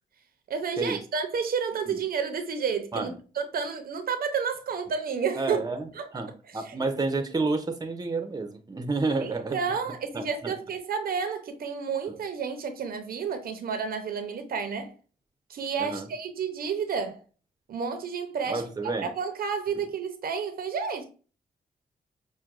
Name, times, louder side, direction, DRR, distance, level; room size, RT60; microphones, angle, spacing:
voice 1, 0.5-5.6 5.9-6.1 6.5-6.8 9.2-14.9 15.5-17.2 17.7-21.0, right 6 dB, 70° right, 0.7 m, -31 dB
voice 2, 5.4-5.9 6.1-9.6 10.1-10.5 15.8-16.1 18.5-19.1, right 3 dB, 25° right, 0.7 m, -30 dB
5.9 x 2.2 x 2.5 m
cardioid pair, 70°, 16 cm